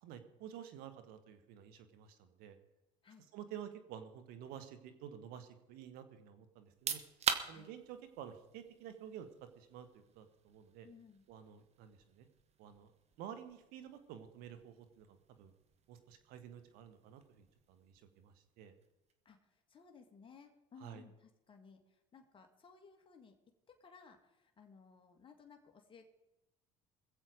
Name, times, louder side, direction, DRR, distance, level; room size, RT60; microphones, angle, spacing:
voice 1, 0.0-2.6 3.3-7.0 7.5-9.3 9.5-10.9 11.3-12.3 12.6-12.9 13.2-15.5 15.9-18.7 20.8-21.0, right 9 dB, 75° right, 10 dB, 1.6 m, -51 dB
sound 1, 6.6-19.3, right 7 dB, 45° right, 1.4 m, -46 dB
voice 2, 10.8-11.3 19.3-23.3 23.7-26.1, left 5 dB, 35° left, 4 dB, 2.1 m, -59 dB
21.5 x 7.8 x 5.2 m, 0.96 s
supercardioid pair, 80°, 16 cm